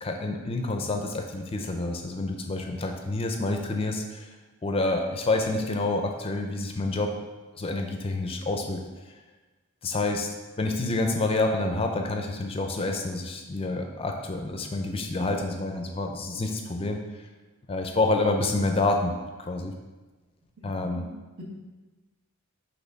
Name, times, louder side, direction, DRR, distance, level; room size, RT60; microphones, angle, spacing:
voice 1, 0.0-4.3 4.6-7.1 7.6-8.8 9.8-17.0 17.7-19.1 19.4-19.7 20.6-21.1, left 2 dB, 25° left, 4 dB, 0.4 m, -28 dB
voice 2, 20.6-21.4, equal, 75° right, -3 dB, 1.5 m, -44 dB
6.2 x 3.0 x 5.1 m, 1.2 s
head